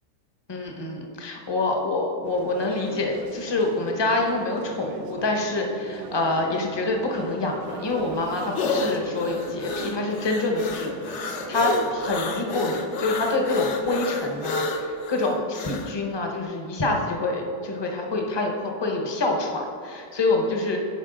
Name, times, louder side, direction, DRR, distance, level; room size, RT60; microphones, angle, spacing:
voice 1, 0.5-20.8, left 2 dB, 30° left, 1 dB, 0.4 m, -26 dB
sound 1, 2.3-14.5, right 6 dB, 80° right, 1.2 m, -40 dB
sound 2, 7.7-15.9, left 4 dB, 65° left, 0.7 m, -30 dB
10.5 x 4.7 x 3.8 m, 2.3 s
omnidirectional pair, 1.8 m